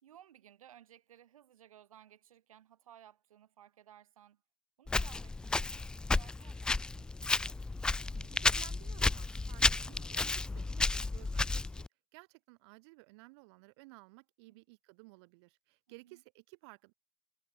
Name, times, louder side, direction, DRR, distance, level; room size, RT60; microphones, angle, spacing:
voice 1, 0.0-4.4 4.8-7.1 11.4-11.5 14.5-14.6 15.9-16.2, right 10 dB, 85° right, 4.2 m, -59 dB
Walk footsteps, 4.9-11.9, left 3 dB, 5° left, 0.3 m, -32 dB
voice 2, 8.1-11.9 12.1-16.9, right 27 dB, 50° right, 5.7 m, -57 dB
hypercardioid pair, 135°, 17 cm